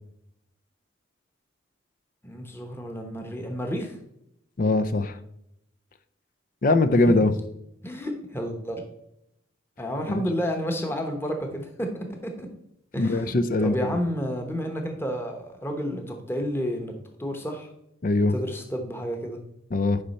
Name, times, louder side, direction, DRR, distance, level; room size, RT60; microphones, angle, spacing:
voice 1, 2.2-4.0 7.8-8.8 9.8-12.5 12.9-13.3 13.6-16.9 17.2-17.7 18.3-19.4, equal, 10° left, 3 dB, 1.0 m, -31 dB
voice 2, 4.6-5.2 6.6-7.3 10.1-10.2 13.0-14.0 18.0-18.3 19.7-20.0, left 2 dB, 45° left, 11 dB, 0.4 m, -22 dB
9.8 x 5.5 x 4.2 m, 0.80 s
head